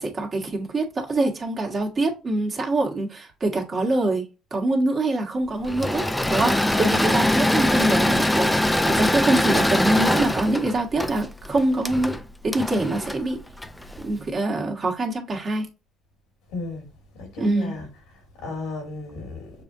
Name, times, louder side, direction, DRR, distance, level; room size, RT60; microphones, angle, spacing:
voice 1, 0.0-4.2 4.5-12.2 12.4-13.4 14.0-15.7 17.4-17.7, right 2 dB, 40° right, 1.5 m, -25 dB
Engine / Mechanisms, 5.6-14.0, left 1 dB, 10° left, 0.5 m, -22 dB
voice 2, 16.5-16.9 17.2-17.9 18.4-19.5, left 3 dB, 90° left, 2.3 m, -34 dB
6.6 x 2.5 x 2.6 m
supercardioid pair, 85°, 0 cm